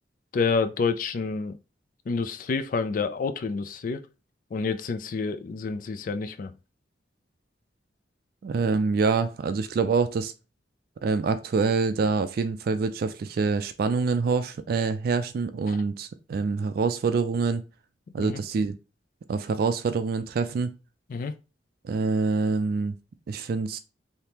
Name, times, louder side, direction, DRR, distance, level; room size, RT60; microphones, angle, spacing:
voice 1, 0.3-1.6 2.1-4.0 4.5-6.5 18.2-18.4 21.1-21.3, left 4 dB, 50° left, 0.3 m, -28 dB
voice 2, 8.4-10.3 11.0-17.6 18.1-18.7 19.3-20.7 21.8-23.0 23.3-23.8, right 4 dB, 55° right, 0.3 m, -26 dB
3.5 x 2.7 x 2.9 m
head